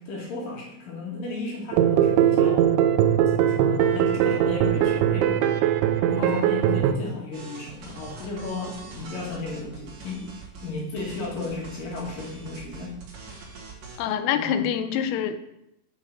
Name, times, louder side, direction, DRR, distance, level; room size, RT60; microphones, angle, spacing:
voice 1, 0.0-2.7 3.3-5.4 6.1-10.3 10.6-12.9 14.3-14.7, left 3 dB, 60° left, -2 dB, 2.6 m, -34 dB
sound 1, 1.7-6.9, right 10 dB, 85° right, 2.8 m, -20 dB
sound 2, 7.3-10.7 11.0-14.1, right 4 dB, 50° right, 2.9 m, -43 dB
voice 2, 14.0-15.4, left 9 dB, 85° left, 10 dB, 3.4 m, -26 dB
9.4 x 5.6 x 5.0 m, 0.81 s
omnidirectional pair, 5.8 m